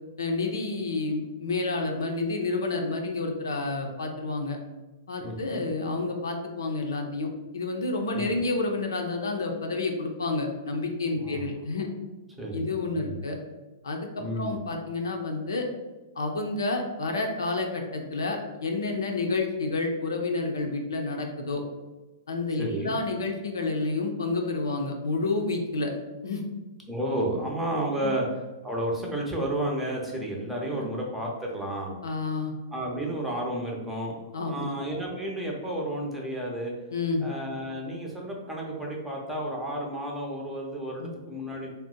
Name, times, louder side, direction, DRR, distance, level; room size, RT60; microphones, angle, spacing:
voice 1, 0.2-4.6 5.1-7.3 7.5-11.9 12.5-13.4 13.8-15.7 16.2-21.6 22.3-25.9 26.2-26.4 28.0-28.1 30.7-30.9 32.0-32.5 34.3-34.7 36.9-37.3 41.0-41.1, left 3 dB, 90° left, 3 dB, 0.5 m, -29 dB
voice 2, 5.2-5.6 8.1-8.3 11.2-11.5 12.4-13.2 14.2-14.6 22.6-22.9 26.9-28.3 28.6-32.0 32.7-36.7 37.2-41.7, right 1 dB, 5° right, -2 dB, 0.6 m, -32 dB
2.6 x 2.0 x 3.7 m, 1.1 s
hypercardioid pair, 125°, 2 cm